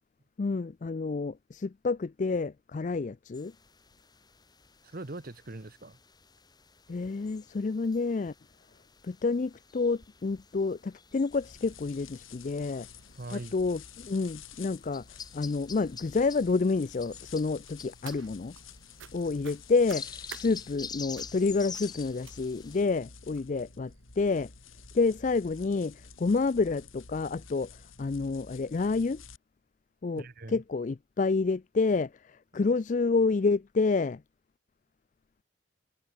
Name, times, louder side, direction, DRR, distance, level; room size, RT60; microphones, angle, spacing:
voice 1, 0.4-3.5 6.9-8.3 9.0-12.9 13.3-15.0 15.3-18.5 19.1-24.5 24.9-29.2 30.0-34.2, left 4 dB, 40° left, 0.4 m, -29 dB
sound 1, 3.3-22.8, left 6 dB, 20° left, 2.7 m, -48 dB
voice 2, 4.8-6.0 13.2-13.5 30.1-30.6, right 2 dB, 45° right, 1.0 m, -41 dB
sound 2, 11.3-29.4, left 6 dB, 85° left, 4.5 m, -50 dB
sound 3, 17.7-18.6 19.0-19.1 19.4-20.5 21.2-21.4 21.7-21.9 22.2-22.7 23.3-23.4 23.9-24.0 24.3-24.4, right 7 dB, 75° right, 2.8 m, -48 dB
head